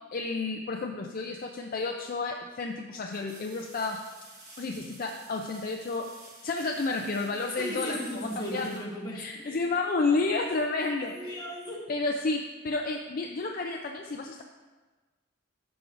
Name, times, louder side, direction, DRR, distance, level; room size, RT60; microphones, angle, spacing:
voice 1, 0.1-4.0 4.6-6.1 6.4-8.0 8.5-8.7 9.1-11.1 11.9-14.4, left 3 dB, 45° left, 2 dB, 0.4 m, -31 dB
sound 1, 3.1-9.7 12.5-12.6, right 2 dB, 35° right, 1.6 m, -52 dB
voice 2, 7.5-9.7 10.9-11.9, left 1 dB, 20° left, -3 dB, 1.4 m, -36 dB
13.0 x 6.0 x 2.5 m, 1.3 s
head